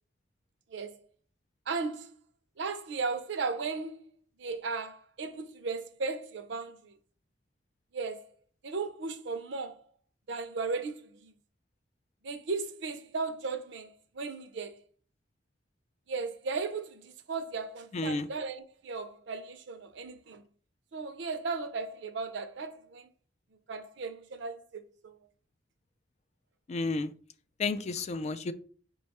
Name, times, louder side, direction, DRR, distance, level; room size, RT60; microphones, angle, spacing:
voice 1, 1.7-2.1 2.6-4.0 4.4-6.9 7.9-8.3 8.6-9.8 10.3-11.3 12.2-14.7 16.1-20.4 20.9-23.1 23.7-25.2, right 4 dB, 70° right, 0.6 m, -36 dB
voice 2, 17.9-18.3 26.7-27.1 27.6-28.5, left 3 dB, 35° left, 0.3 m, -31 dB
5.2 x 2.3 x 4.1 m
head